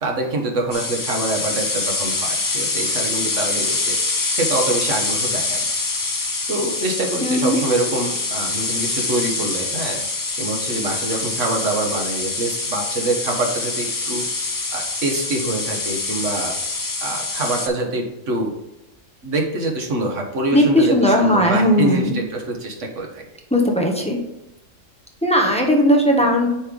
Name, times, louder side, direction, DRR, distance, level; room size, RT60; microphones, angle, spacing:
voice 1, 0.0-4.0 4.3-5.7 6.5-10.1 10.4-14.2 14.7-16.6 17.0-18.5 19.2-23.2, right 2 dB, 65° right, 2 dB, 1.5 m, -25 dB
sound 1, 0.7-17.7, left 3 dB, 30° left, 0.3 m, -25 dB
voice 2, 7.2-7.6 20.5-22.2 23.5-24.2 25.2-26.5, equal, 5° left, 0 dB, 0.9 m, -17 dB
9.6 x 3.3 x 3.7 m, 0.94 s
omnidirectional pair, 1.4 m